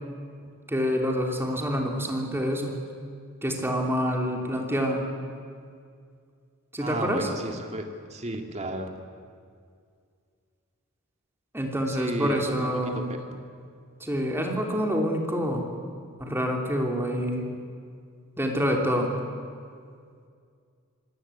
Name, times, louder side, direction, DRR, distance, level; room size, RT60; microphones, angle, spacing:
voice 1, 0.7-2.8 3.4-5.0 6.7-7.3 11.5-13.1 14.0-15.7 16.2-17.5 18.4-19.1, equal, 10° right, 1 dB, 3.0 m, -27 dB
voice 2, 6.8-9.0 11.9-13.4, right 1 dB, 30° right, 4 dB, 2.2 m, -33 dB
25.0 x 18.0 x 8.5 m, 2.2 s
head